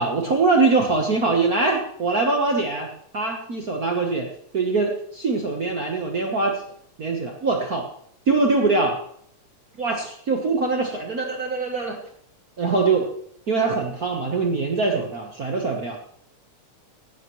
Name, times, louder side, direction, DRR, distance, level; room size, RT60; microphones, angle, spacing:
voice 1, 0.0-6.6 7.0-7.9 8.3-9.0 9.8-12.0 12.6-13.1 13.5-16.0, right 3 dB, 50° right, 2 dB, 1.1 m, -23 dB
15.5 x 12.0 x 3.1 m, 0.65 s
omnidirectional pair, 3.3 m